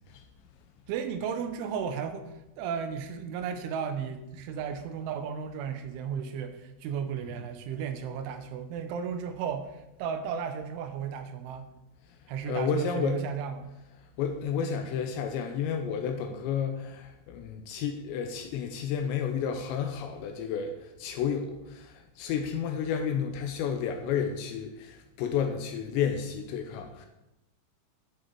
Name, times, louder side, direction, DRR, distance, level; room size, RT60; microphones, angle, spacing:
voice 1, 0.9-2.3 2.6-11.7 12.3-13.7, right 7 dB, 85° right, 8 dB, 3.1 m, -34 dB
voice 2, 12.5-13.2 14.2-20.7 21.0-27.1, left 7 dB, 85° left, 6 dB, 2.7 m, -31 dB
11.0 x 6.7 x 4.5 m, 0.94 s
omnidirectional pair, 5.6 m